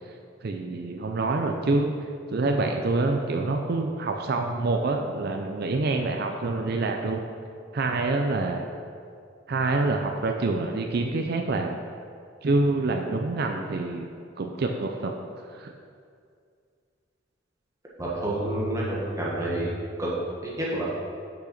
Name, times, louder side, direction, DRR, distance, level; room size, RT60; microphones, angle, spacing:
voice 1, 0.4-1.9 2.3-7.2 7.7-8.7 9.5-11.8 12.4-14.1 14.4-15.1 15.5-15.7, right 3 dB, 50° right, 3 dB, 0.5 m, -26 dB
voice 2, 18.0-19.7 20.0-20.1 20.4-20.8, right 1 dB, 15° right, -6 dB, 1.3 m, -28 dB
6.2 x 5.9 x 5.8 m, 2.3 s
head